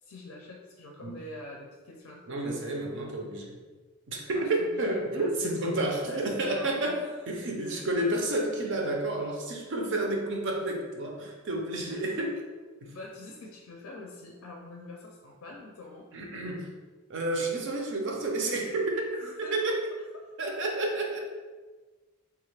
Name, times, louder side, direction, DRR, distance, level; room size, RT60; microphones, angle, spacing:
voice 1, 0.0-2.6 4.3-7.1 7.6-8.1 11.9-12.2 12.8-16.1 19.1-19.8 20.1-20.2, left 2 dB, 65° left, -1 dB, 0.4 m, -45 dB
voice 2, 2.3-3.6 4.1-7.0 7.3-12.4 12.8-12.9 16.1-16.7 17.1-19.8 20.4-21.2, right 2 dB, 55° right, 1 dB, 0.5 m, -30 dB
3.3 x 2.3 x 3.2 m, 1.3 s
head